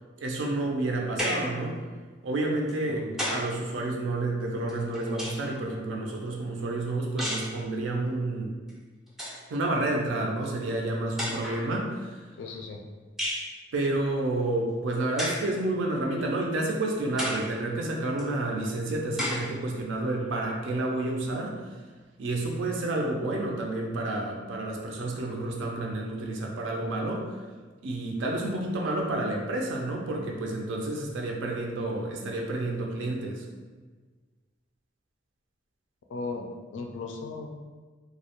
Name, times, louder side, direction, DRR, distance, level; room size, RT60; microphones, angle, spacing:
voice 1, 0.2-1.8 2.2-8.5 9.5-12.2 13.7-21.6 22.2-27.4 27.8-33.4, right 2 dB, 75° right, 0 dB, 0.4 m, -30 dB
sound 1, 1.2-1.6 2.7-3.6 4.7-5.6 7.2-7.6 8.7-8.8 9.1-9.4 10.4-10.5 11.2-11.7 13.2-13.5 15.2-15.5 16.2-16.3 17.2-17.5 18.2-18.3 19.2-19.5, equal, ahead, 0.4 m, -32 dB
voice 2, 2.9-3.2 12.4-12.8 36.1-36.5 36.7-37.5, left 3 dB, 70° left, 2 dB, 0.3 m, -36 dB
2.3 x 2.0 x 2.8 m, 1.4 s
head